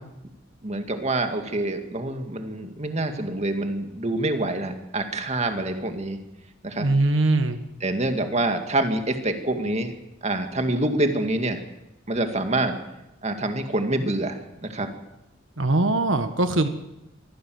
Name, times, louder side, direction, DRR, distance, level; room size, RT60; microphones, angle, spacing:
voice 1, 0.6-6.2 6.6-6.9 7.8-9.9 10.2-11.6 12.1-12.8 13.2-14.9, right 2 dB, 35° right, 6 dB, 2.1 m, -26 dB
voice 2, 6.8-7.6 15.6-16.7, right 2 dB, 85° right, 9 dB, 1.4 m, -21 dB
23.5 x 15.0 x 7.9 m, 0.93 s
head